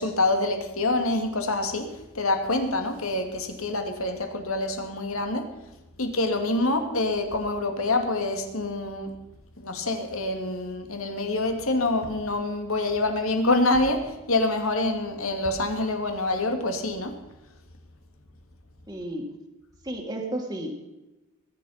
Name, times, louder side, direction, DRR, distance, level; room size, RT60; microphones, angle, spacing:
voice 1, 0.0-1.9 2.1-5.5 6.0-9.1 9.6-17.1, left 2 dB, 70° left, 5 dB, 2.7 m, -26 dB
voice 2, 18.9-19.3 19.8-20.8, right 1 dB, 15° right, 0 dB, 2.1 m, -32 dB
21.0 x 10.5 x 5.8 m, 1.0 s
head